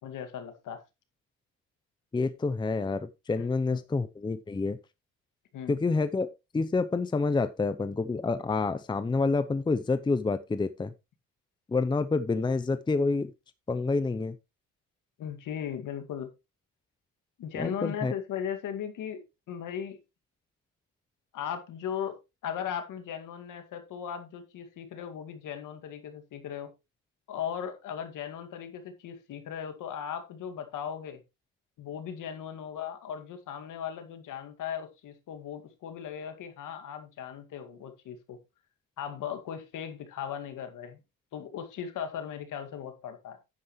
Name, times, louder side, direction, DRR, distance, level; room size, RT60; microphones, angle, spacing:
voice 1, 0.0-0.8 3.4-3.5 3.7-3.8 5.5-5.8 15.2-16.3 17.4-19.2 19.5-20.0 21.3-22.2 22.4-26.7 27.3-31.2 31.8-38.4 39.0-41.0 41.3-43.4, left 8 dB, 65° left, 2.1 m, -37 dB
voice 2, 2.1-4.8 5.7-6.3 6.5-10.9 11.7-13.3 13.7-14.4 17.5-18.1, left 3 dB, 15° left, 0.6 m, -28 dB
10.0 x 9.3 x 3.1 m
cardioid pair, 110°, 33 cm